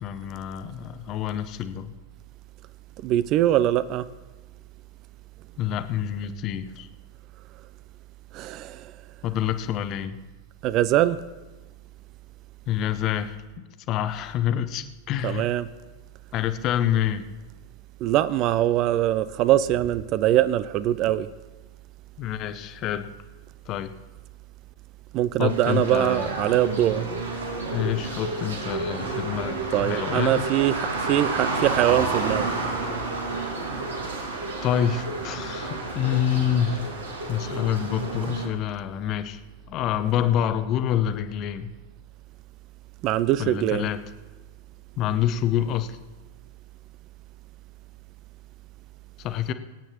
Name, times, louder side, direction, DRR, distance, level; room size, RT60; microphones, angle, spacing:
voice 1, 0.0-1.9 5.6-6.9 9.2-10.2 12.7-15.5 16.3-17.3 22.2-23.1 23.7-23.9 25.4-26.3 27.7-30.5 34.6-37.0 37.3-39.4 39.7-41.7 43.4-44.0 45.0-46.0 49.2-49.5, left 10 dB, 35° left, 10 dB, 0.8 m, -27 dB
voice 2, 3.0-4.1 8.3-8.9 10.6-11.2 15.2-15.7 18.0-21.3 25.1-27.1 29.7-32.5 43.0-43.9, right 13 dB, 40° right, 16 dB, 0.4 m, -22 dB
sound 1, 25.5-38.5, right 3 dB, 70° right, 2.0 m, -30 dB
24.5 x 9.0 x 2.9 m, 1.2 s
figure-of-eight pair, 90°, 0 cm